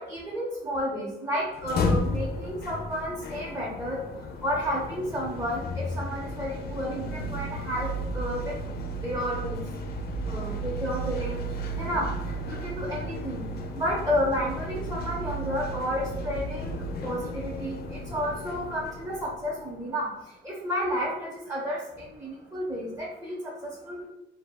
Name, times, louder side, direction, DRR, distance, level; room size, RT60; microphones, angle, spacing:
voice 1, 0.0-4.0 4.4-7.9 8.1-8.5 9.0-9.6 10.2-11.4 11.8-12.1 12.5-13.4 13.8-17.8 18.1-20.1 20.4-21.8 22.2-24.1, equal, 15° right, -6 dB, 0.6 m, -31 dB
sound 1, 1.5-19.7, equal, 55° left, 0.4 m, -33 dB
2.2 x 2.0 x 3.3 m, 0.92 s
cardioid pair, 90°, 20 cm